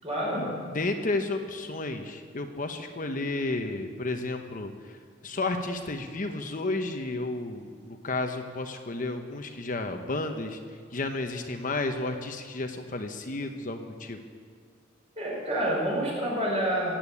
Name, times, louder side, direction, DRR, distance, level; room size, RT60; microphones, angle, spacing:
voice 1, 0.0-0.6 15.2-16.9, right 1 dB, 35° right, -3 dB, 5.4 m, -28 dB
voice 2, 0.7-5.0 5.2-10.6 10.9-14.2, left 2 dB, 45° left, 5 dB, 1.0 m, -32 dB
17.0 x 8.8 x 8.6 m, 2.1 s
head